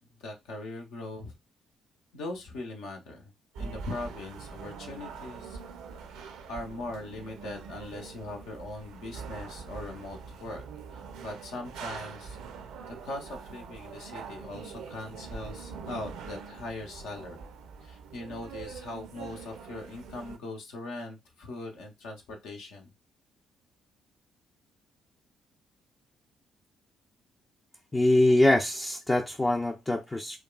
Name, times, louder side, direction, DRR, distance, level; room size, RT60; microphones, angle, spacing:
voice 1, 0.2-1.3 2.1-3.3 3.6-5.6 6.5-10.6 10.9-12.4 12.9-17.4 17.8-22.9, left 2 dB, 65° left, 0.8 m, -40 dB
sound 1, 3.5-20.4, right 5 dB, 65° right, 0.5 m, -43 dB
voice 2, 27.9-30.4, left 1 dB, 20° left, 0.5 m, -24 dB
4.5 x 2.3 x 2.3 m
figure-of-eight pair, 40°, 0 cm